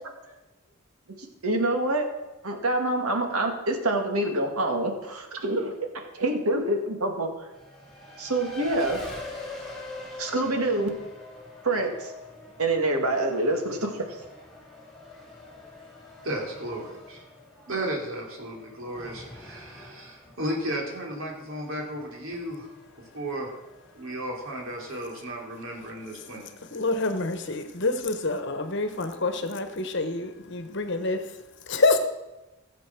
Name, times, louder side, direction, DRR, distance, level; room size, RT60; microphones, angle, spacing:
voice 1, 1.4-2.1 2.4-5.7 6.1-7.5 8.2-9.0 10.2-10.9 11.6-12.1 12.6-14.2, right 2 dB, 80° right, 4 dB, 2.0 m, -26 dB
Race car auto racing, 7.5-26.6, left 2 dB, ahead, 3.3 m, -45 dB
voice 2, 16.2-17.2 17.7-22.7 23.1-23.5 23.9-26.4, right 1 dB, 65° right, -1 dB, 3.1 m, -34 dB
voice 3, 26.4-31.4 31.7-32.0, left 3 dB, 55° left, 8 dB, 1.1 m, -27 dB
15.5 x 7.5 x 6.0 m, 1.0 s
head